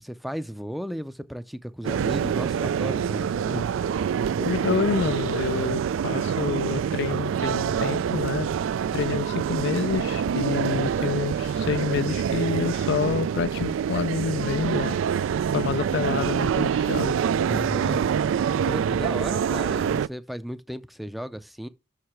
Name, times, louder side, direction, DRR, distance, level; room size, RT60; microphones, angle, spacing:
voice 1, 0.0-3.7 17.5-18.0 18.7-21.7, equal, ahead, 0.4 m, -34 dB
sound 1, 1.8-20.1, right 7 dB, 85° right, 0.3 m, -26 dB
voice 2, 4.4-8.5 8.9-15.0 15.5-17.1, left 6 dB, 65° left, 0.3 m, -28 dB
6.5 x 4.9 x 5.8 m
head